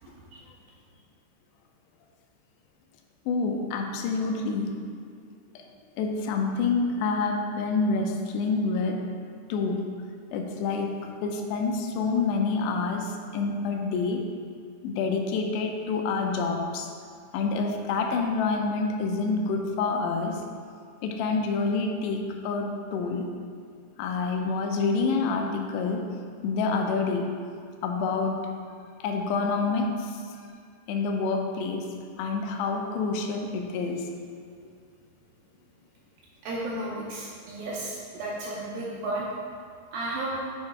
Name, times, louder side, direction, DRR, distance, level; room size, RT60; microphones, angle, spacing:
voice 1, 0.0-0.4 36.4-39.3 39.9-40.4, right 2 dB, 75° right, -5 dB, 2.2 m, -33 dB
voice 2, 3.3-4.8 6.0-9.0 9.5-9.8 10.3-10.9 11.2-14.2 14.8-16.9 17.3-20.4 21.0-23.3 24.0-26.0 26.4-27.3 27.8-28.4 29.0-30.1 30.9-34.1, left 4 dB, 85° left, 3 dB, 2.7 m, -27 dB
8.6 x 3.2 x 4.5 m, 2.2 s
omnidirectional pair, 4.8 m